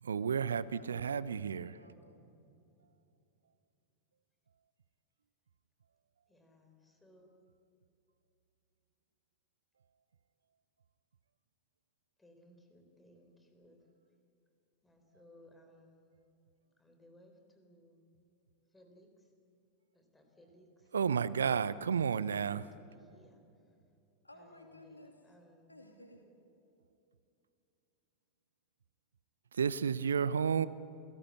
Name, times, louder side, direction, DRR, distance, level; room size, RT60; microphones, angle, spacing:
voice 1, 0.0-1.8 20.9-22.7 29.5-30.7, right 7 dB, 70° right, 18 dB, 0.6 m, -32 dB
voice 2, 0.5-1.4 1.7-2.3 24.2-25.2 25.7-26.2, left 1 dB, 85° left, 4 dB, 2.8 m, -56 dB
voice 3, 6.3-7.3 12.2-13.9 14.8-16.2 16.8-18.1 18.7-19.3 19.9-21.7 22.0-23.4 24.3-25.7, left 1 dB, 10° left, 5 dB, 4.2 m, -62 dB
29.5 x 17.0 x 8.5 m, 2.8 s
figure-of-eight pair, 90°, 0 cm